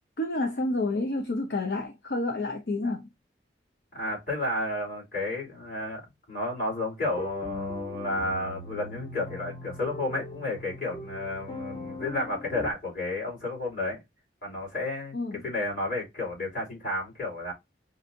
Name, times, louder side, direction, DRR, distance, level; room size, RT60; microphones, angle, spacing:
voice 1, 0.2-3.1 15.1-15.5, left 2 dB, 70° left, 0.7 m, -29 dB
voice 2, 3.9-6.0 6.3-14.0 14.4-15.2 15.4-17.5, left 2 dB, 50° left, 3.1 m, -32 dB
sound 1, 7.0-12.7, left 1 dB, 25° left, 0.5 m, -39 dB
5.5 x 2.6 x 2.7 m
head